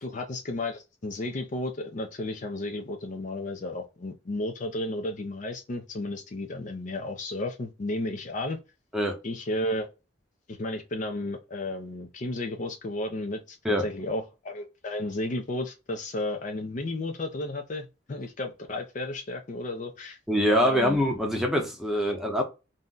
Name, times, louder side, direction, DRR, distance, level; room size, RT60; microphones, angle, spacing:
voice 1, 0.0-8.6 9.2-9.9 10.5-13.6 13.8-20.2 20.5-21.0, left 1 dB, 40° left, 0.4 m, -33 dB
voice 2, 20.3-22.4, equal, ahead, 0.6 m, -24 dB
2.7 x 2.1 x 3.6 m
head